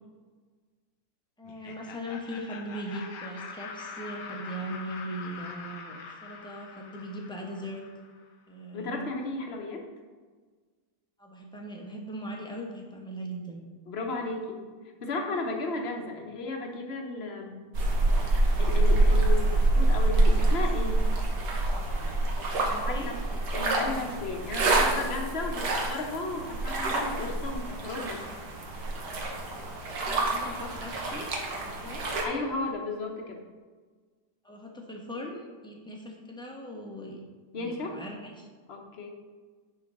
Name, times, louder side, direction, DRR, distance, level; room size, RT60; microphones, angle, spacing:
Laughter, 1.4-8.2, left 5 dB, 90° left, 1.4 m, -44 dB
voice 1, 1.4-7.8 8.5-9.0 11.2-13.6 22.5-23.1 30.0-31.3 31.6-32.1 34.4-37.2 37.6-38.5, equal, 5° left, -1 dB, 0.9 m, -39 dB
voice 2, 8.7-9.8 13.9-14.6 15.0-17.6 18.6-21.1 22.7-28.2 32.2-33.4 37.5-38.0 38.7-39.1, left 3 dB, 45° left, 2 dB, 1.2 m, -34 dB
sound 1, 17.7-32.2, right 2 dB, 85° right, 1.8 m, -26 dB
10.5 x 3.8 x 5.3 m, 1.5 s
omnidirectional pair, 1.8 m